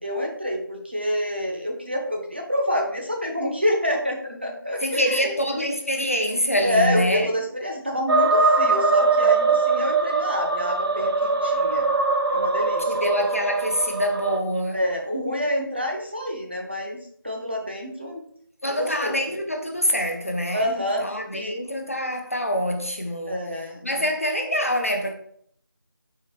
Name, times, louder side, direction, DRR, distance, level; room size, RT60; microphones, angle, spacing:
voice 1, 0.0-5.2 5.5-5.7 6.6-11.9 12.3-13.0 14.7-18.2 18.6-19.1 20.5-21.0 21.3-21.5 23.3-24.0, equal, 30° right, 0.5 m, -27 dB
voice 2, 4.8-7.3 12.9-14.8 18.6-23.5 23.8-25.1, equal, 35° left, 0.4 m, -25 dB
sound 1, 8.1-14.4, right 3 dB, 80° right, 0.6 m, -22 dB
4.6 x 3.1 x 3.0 m
figure-of-eight pair, 175°, 12 cm